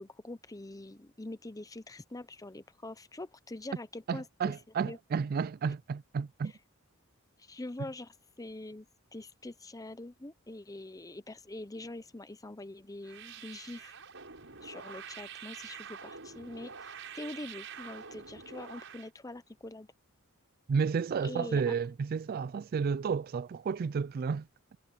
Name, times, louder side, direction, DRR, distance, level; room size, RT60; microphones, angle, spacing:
voice 1, 0.0-4.5 4.8-5.0 7.4-8.9 9.1-13.9 14.6-16.7 17.1-19.9 21.2-21.7, left 2 dB, 15° left, 0.8 m, -44 dB
voice 2, 4.1-6.5 20.7-24.5, right 5 dB, 45° right, 0.3 m, -31 dB
sound 1, 13.0-19.1, right 6 dB, 65° right, 7.9 m, -46 dB
head